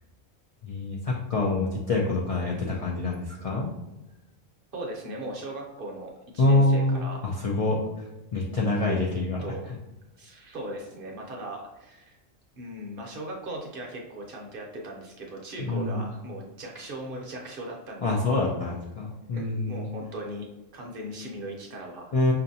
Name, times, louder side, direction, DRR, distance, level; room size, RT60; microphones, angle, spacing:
voice 1, 0.6-3.7 6.4-7.9 8.3-9.4 15.6-16.0 18.0-19.9 22.1-22.3, left 2 dB, 65° left, -2 dB, 0.3 m, -26 dB
voice 2, 4.7-7.2 8.8-9.1 9.4-9.6 10.2-12.2 12.6-18.2 19.3-20.5 20.7-22.1, right 1 dB, 50° right, 0 dB, 0.8 m, -38 dB
5.5 x 2.5 x 2.7 m, 1.0 s
omnidirectional pair, 1.3 m